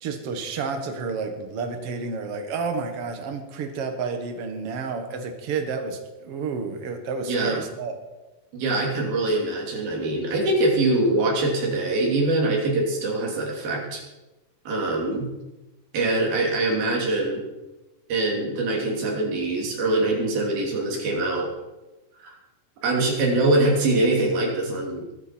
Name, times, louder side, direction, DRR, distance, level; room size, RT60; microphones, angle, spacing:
voice 1, 0.0-8.0, right 4 dB, 50° right, 5 dB, 2.1 m, -30 dB
voice 2, 7.3-7.6 8.5-14.0 14.7-15.3 15.9-17.4 18.1-21.5 22.2-22.3 22.8-25.0, right 2 dB, 85° right, -1 dB, 4.9 m, -23 dB
22.0 x 9.7 x 4.5 m, 1.1 s
omnidirectional pair, 4.1 m